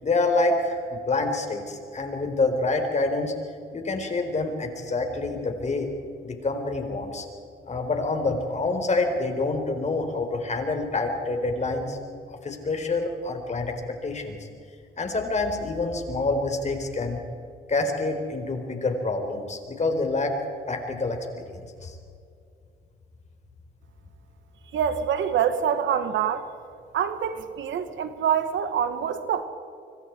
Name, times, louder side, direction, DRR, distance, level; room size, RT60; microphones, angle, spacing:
voice 1, 0.0-3.3 3.7-5.9 6.2-7.3 7.7-12.0 12.3-14.5 15.0-17.2 17.7-20.4 20.7-22.0, left 3 dB, 35° left, 5 dB, 4.4 m, -27 dB
voice 2, 24.7-26.5 26.9-29.4, right 8 dB, 75° right, 9 dB, 1.9 m, -25 dB
25.5 x 25.0 x 4.8 m, 2.4 s
cardioid pair, 90°, 20 cm